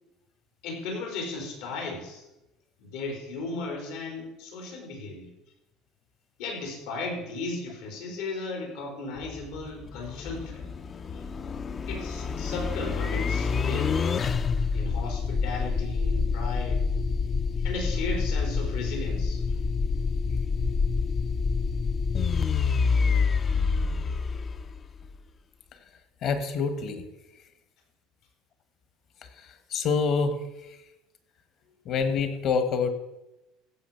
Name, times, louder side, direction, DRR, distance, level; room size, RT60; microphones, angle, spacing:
voice 1, 0.6-2.2 2.8-5.3 6.4-10.6 11.1-11.2 11.9-14.0 14.7-16.8 17.6-19.6, left 3 dB, 80° left, 1 dB, 4.3 m, -36 dB
sound 1, 9.2-25.2, left 5 dB, 25° left, 0.4 m, -27 dB
voice 2, 26.2-27.0 29.7-30.4 30.7-30.8 31.8-32.9, left 5 dB, 45° left, 9 dB, 1.4 m, -26 dB
15.5 x 6.4 x 5.7 m, 0.97 s
cardioid pair, 150°, 0 cm